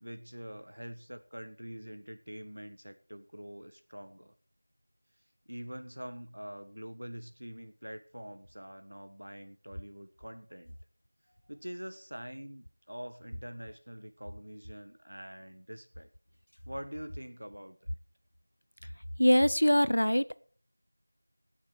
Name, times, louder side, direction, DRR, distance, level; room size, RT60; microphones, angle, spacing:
voice 1, 0.0-4.3 5.5-10.8 11.5-16.1 16.7-17.8, equal, 60° right, 11 dB, 1.5 m, -45 dB
voice 2, 19.2-20.4, equal, 75° left, 16 dB, 0.7 m, -23 dB
18.0 x 6.7 x 4.7 m, 0.42 s
figure-of-eight pair, 180°, 0 cm